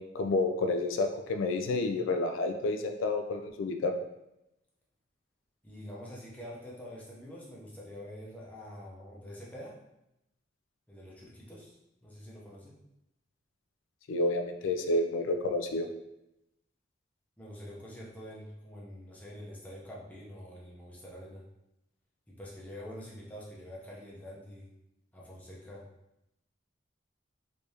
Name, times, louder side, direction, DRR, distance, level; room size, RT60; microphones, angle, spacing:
voice 1, 0.0-3.9 14.1-15.9, left 2 dB, 90° left, 6 dB, 0.4 m, -30 dB
voice 2, 5.6-9.7 10.9-12.7 17.4-21.4 22.3-24.7 25.1-25.8, equal, 10° left, -5 dB, 0.7 m, -46 dB
3.3 x 3.2 x 2.8 m, 0.87 s
head